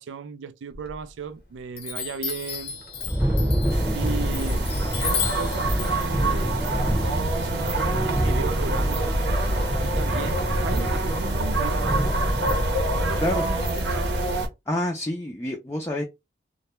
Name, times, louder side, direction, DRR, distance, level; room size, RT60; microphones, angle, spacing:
voice 1, 0.0-2.8 3.9-9.2 9.8-12.0 12.9-14.2, right 5 dB, 90° right, 0.3 m, -35 dB
Chime, 0.7-1.4 1.8-7.6, left 7 dB, 55° left, 0.6 m, -34 dB
Thunder, 2.5-12.6, equal, 10° right, 0.8 m, -28 dB
sound 1, 3.7-14.5, right 1 dB, 70° right, 0.7 m, -26 dB
voice 2, 14.7-16.0, left 1 dB, 15° left, 0.3 m, -27 dB
2.1 x 2.1 x 2.9 m
head